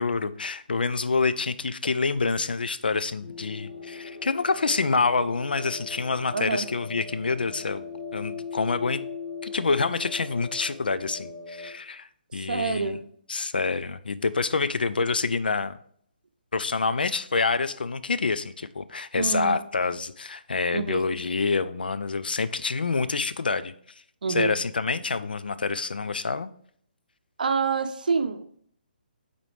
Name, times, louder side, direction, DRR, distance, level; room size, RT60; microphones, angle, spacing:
voice 1, 0.0-7.8 8.1-9.0 9.4-13.0 13.3-15.8 16.5-23.7 24.3-26.5, left 4 dB, 70° left, 13 dB, 0.4 m, -27 dB
sound 1, 3.2-11.7, left 5 dB, 45° left, 1.4 m, -39 dB
voice 2, 6.3-6.7 12.4-13.0 19.2-19.6 20.7-21.0 24.2-24.5 27.4-28.4, right 5 dB, 60° right, 9 dB, 0.6 m, -27 dB
7.5 x 4.1 x 3.2 m, 0.62 s
figure-of-eight pair, 140°, 5 cm